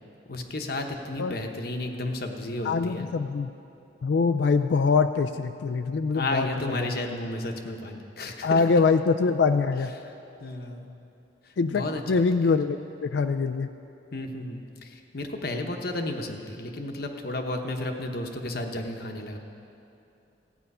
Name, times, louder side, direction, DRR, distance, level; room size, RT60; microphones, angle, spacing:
voice 1, 0.3-3.1 6.1-8.6 10.0-10.1 10.4-10.9 11.4-12.2 14.1-19.4, left 2 dB, 55° left, 4 dB, 1.0 m, -33 dB
voice 2, 2.6-3.5 4.0-6.5 8.4-9.9 11.6-13.7, left 4 dB, 75° left, 7 dB, 0.4 m, -24 dB
15.5 x 9.0 x 5.5 m, 2.8 s
head